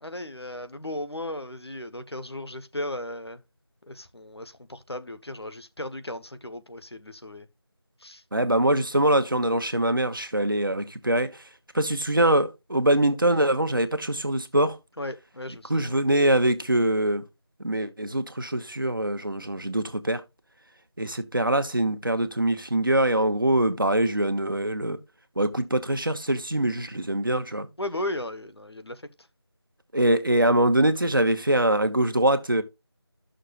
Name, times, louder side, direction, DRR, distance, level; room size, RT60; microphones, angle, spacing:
voice 1, 0.0-3.4 3.8-7.5 8.0-8.2 15.0-16.0 27.8-29.1, left 1 dB, 75° left, 1.3 m, -36 dB
voice 2, 8.3-11.3 11.7-14.8 15.7-17.2 17.6-20.2 21.0-25.0 25.4-27.7 29.9-32.6, right 1 dB, 55° right, 1.1 m, -23 dB
12.5 x 6.5 x 2.5 m
figure-of-eight pair, 170°, 14 cm